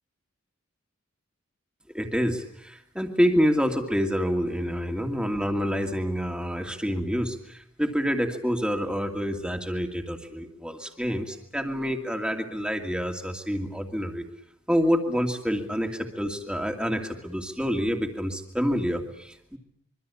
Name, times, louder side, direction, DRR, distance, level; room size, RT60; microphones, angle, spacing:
voice 1, 1.9-14.2 14.7-19.6, equal, 5° right, 4 dB, 2.5 m, -27 dB
25.5 x 24.0 x 8.6 m, 0.77 s
head